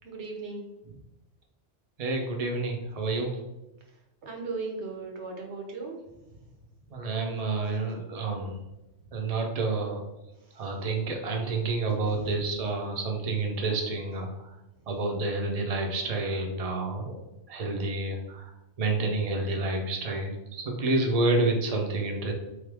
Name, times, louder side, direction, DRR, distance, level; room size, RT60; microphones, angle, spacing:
voice 1, 0.0-0.6 4.2-6.0, right 4 dB, 70° right, 0 dB, 1.2 m, -36 dB
voice 2, 2.0-3.4 6.9-8.6 9.1-10.0 10.6-14.5 14.9-17.2 17.5-18.5 18.8-22.3, right 3 dB, 40° right, 2 dB, 0.7 m, -29 dB
4.0 x 3.2 x 3.4 m, 0.96 s
omnidirectional pair, 1.2 m